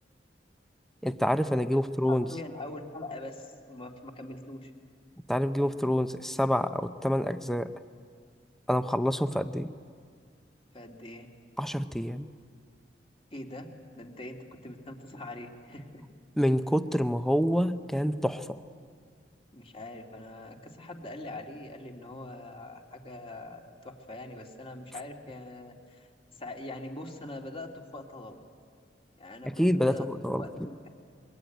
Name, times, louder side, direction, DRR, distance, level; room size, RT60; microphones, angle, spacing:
voice 1, 1.0-2.2 5.3-7.7 8.7-9.7 11.6-12.3 16.4-18.6 29.6-30.4, equal, ahead, 10 dB, 0.7 m, -27 dB
voice 2, 2.1-4.7 10.7-11.3 13.3-13.7 13.9-14.4 14.6-16.0 19.5-28.4 29.2-30.1 30.4-30.9, left 2 dB, 30° left, 2 dB, 2.4 m, -43 dB
25.5 x 22.5 x 9.3 m, 2.1 s
head